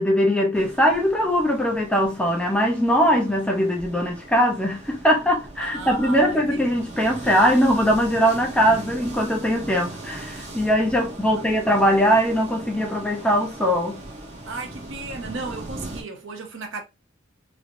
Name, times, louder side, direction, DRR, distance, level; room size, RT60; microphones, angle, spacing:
voice 1, 0.0-14.0, equal, 5° left, 0.6 m, -21 dB
sound 1, 0.5-16.0, right 2 dB, 35° right, 0.9 m, -39 dB
voice 2, 5.6-6.7 11.3-11.7 14.5-16.8, right 3 dB, 70° right, 0.8 m, -35 dB
3.2 x 2.7 x 2.6 m
head